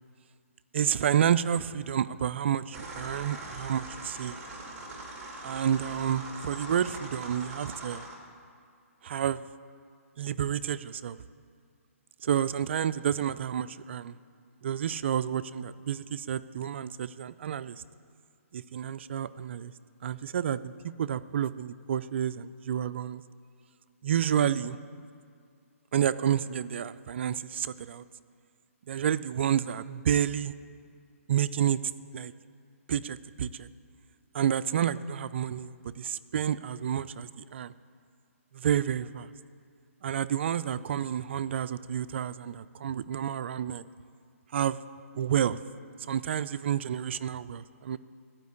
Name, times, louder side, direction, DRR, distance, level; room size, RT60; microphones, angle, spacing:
voice 1, 0.7-4.4 5.4-8.0 9.0-9.4 10.2-11.2 12.2-14.2 14.6-17.8 18.5-19.7 20.0-23.2 24.0-24.8 25.9-28.0 28.9-30.5 31.3-31.8 32.1-32.3 32.9-33.7 34.3-37.7 38.5-39.3 40.0-43.8 44.5-44.8 45.1-45.6 46.0-48.0, right 9 dB, 50° right, 14 dB, 0.3 m, -30 dB
sound 1, 2.7-8.1, right 2 dB, 15° right, 1.6 m, -42 dB
12.0 x 5.1 x 8.4 m, 2.2 s
hypercardioid pair, 155°, 8 cm